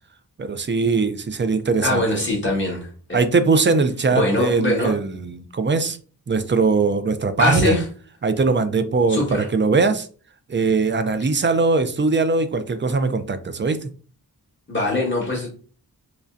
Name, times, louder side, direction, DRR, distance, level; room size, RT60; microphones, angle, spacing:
voice 1, 0.4-2.2 3.1-6.0 6.3-7.8 8.2-10.1 10.5-13.9, right 4 dB, 30° right, 10 dB, 0.4 m, -21 dB
voice 2, 1.8-3.2 4.1-4.9 7.4-7.8 9.1-9.5 14.7-15.5, left 1 dB, 30° left, -2 dB, 1.5 m, -22 dB
4.9 x 2.2 x 2.6 m, 0.39 s
wide cardioid pair, 110°, 38 cm